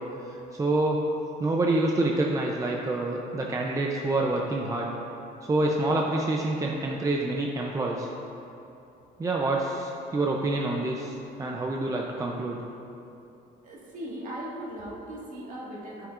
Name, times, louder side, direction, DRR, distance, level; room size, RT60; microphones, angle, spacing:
voice 1, 0.3-1.0 1.4-4.9 5.4-8.1 9.2-12.6, right 2 dB, 20° right, -1 dB, 0.6 m, -27 dB
voice 2, 13.6-16.1, right 1 dB, 50° right, -4 dB, 1.8 m, -38 dB
12.5 x 5.8 x 2.5 m, 2.8 s
cardioid pair, 110°, 17 cm